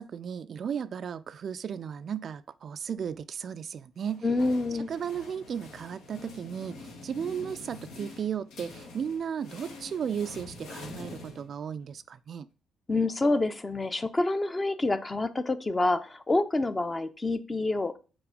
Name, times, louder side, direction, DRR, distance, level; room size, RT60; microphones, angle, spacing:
voice 1, 0.0-4.2 4.9-12.5, right 7 dB, 50° right, 0.3 m, -35 dB
sound 1, 4.0-11.9, left 3 dB, 85° left, 1.5 m, -46 dB
voice 2, 4.2-4.9 12.9-18.0, left 2 dB, 20° left, 0.6 m, -27 dB
5.9 x 4.1 x 5.1 m
cardioid pair, 105°, 0 cm